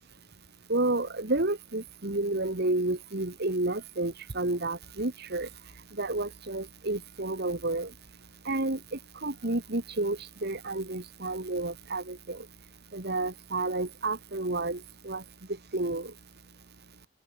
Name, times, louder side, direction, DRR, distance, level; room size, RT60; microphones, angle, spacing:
voice 1, 0.7-5.5 6.0-7.9 8.5-12.4 12.9-15.2 15.7-16.1, right 2 dB, 50° right, 1.8 m, -31 dB
open air
head